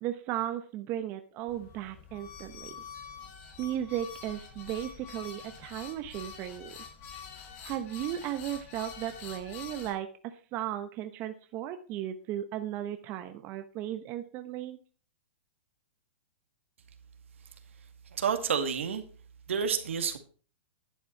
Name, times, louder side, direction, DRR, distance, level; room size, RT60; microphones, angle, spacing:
voice 1, 0.0-2.8 3.6-6.8 7.6-14.8, right 11 dB, 35° right, 8 dB, 1.0 m, -36 dB
sound 1, 1.5-9.9, left 7 dB, 35° left, 4.7 m, -46 dB
voice 2, 18.1-19.0 19.5-20.2, right 7 dB, 85° right, 6 dB, 2.2 m, -29 dB
11.0 x 8.5 x 4.6 m, 0.38 s
hypercardioid pair, 145°, 7 cm